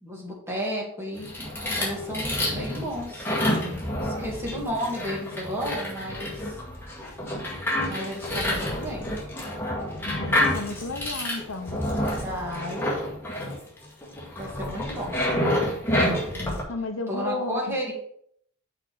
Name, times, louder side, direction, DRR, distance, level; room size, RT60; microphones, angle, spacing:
voice 1, 0.0-1.3 1.8-3.3 4.0-6.4 7.9-9.1 12.2-12.9 14.4-15.2 17.1-17.9, equal, 10° right, -3 dB, 2.1 m, -32 dB
sound 1, 1.2-16.6, left 1 dB, 10° left, 1.8 m, -28 dB
voice 2, 10.0-11.8 16.7-17.8, left 3 dB, 65° left, 7 dB, 0.8 m, -33 dB
5.7 x 4.4 x 6.2 m, 0.67 s
head